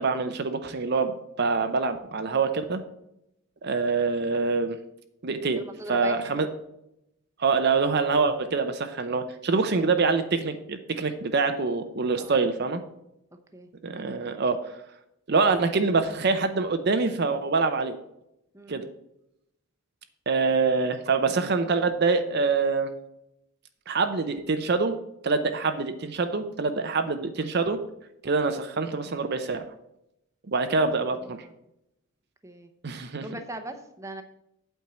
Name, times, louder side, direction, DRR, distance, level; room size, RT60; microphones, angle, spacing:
voice 1, 0.0-2.8 3.6-4.8 5.2-5.6 5.9-6.5 7.4-12.8 13.8-14.7 15.3-18.0 18.7-18.8 20.3-22.9 23.9-24.9 25.2-27.8 28.2-29.6 30.5-31.4 32.8-33.2, right 4 dB, 50° right, 8 dB, 0.6 m, -25 dB
voice 2, 5.4-6.5 12.1-12.4 13.5-13.7 18.5-18.9 31.3-31.5 32.4-32.7 33.2-34.2, right 2 dB, 15° right, 6 dB, 0.8 m, -40 dB
8.5 x 4.5 x 7.4 m, 0.83 s
head